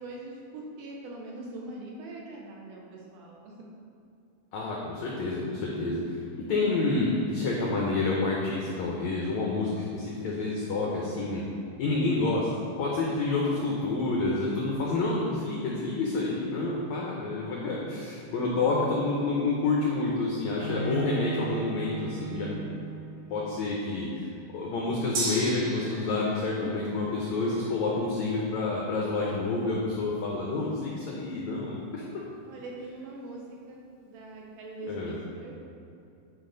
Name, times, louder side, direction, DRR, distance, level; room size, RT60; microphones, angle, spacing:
voice 1, 0.0-3.6 18.4-18.9 32.5-35.6, right 2 dB, 75° right, -2 dB, 2.0 m, -42 dB
voice 2, 4.5-11.4 11.8-12.5 12.8-22.6 23.3-24.3 24.5-32.0 34.9-35.2, left 3 dB, 90° left, -3 dB, 1.5 m, -28 dB
Bowed string instrument, 20.6-23.5, right 5 dB, 45° right, 2.4 m, -36 dB
Gong, 25.1-32.9 33.2-33.3, right 2 dB, 60° right, 2.7 m, -40 dB
10.5 x 4.9 x 3.9 m, 2.7 s
omnidirectional pair, 4.3 m